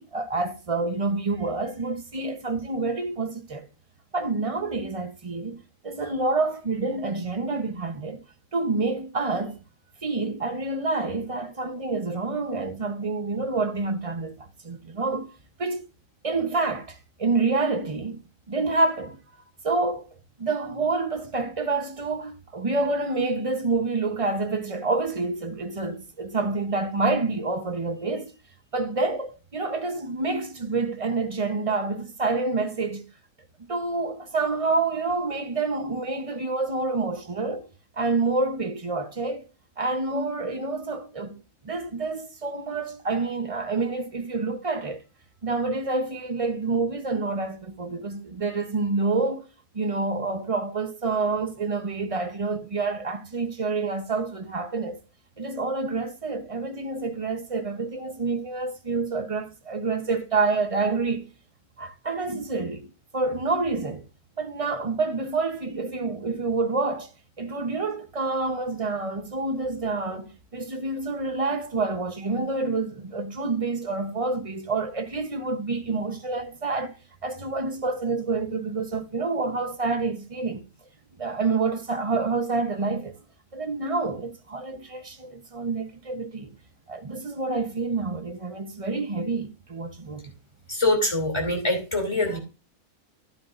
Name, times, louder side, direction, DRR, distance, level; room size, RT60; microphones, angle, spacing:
voice 1, 0.0-3.7 4.1-5.6 5.8-8.2 8.5-9.6 10.0-14.3 14.6-15.8 16.2-19.2 19.6-20.1 20.4-28.3 28.7-33.1 33.7-37.7 38.0-39.5 39.8-41.4 41.6-45.0 45.4-49.4 49.7-55.0 55.4-61.3 61.8-64.0 64.4-67.1 67.4-76.9 77.2-80.6 81.2-83.2 83.5-86.5 86.9-90.2, right 3 dB, 30° right, 0.8 m, -28 dB
voice 2, 90.7-92.4, left 2 dB, 20° left, 3.0 m, -24 dB
12.0 x 9.2 x 2.5 m
omnidirectional pair, 1.6 m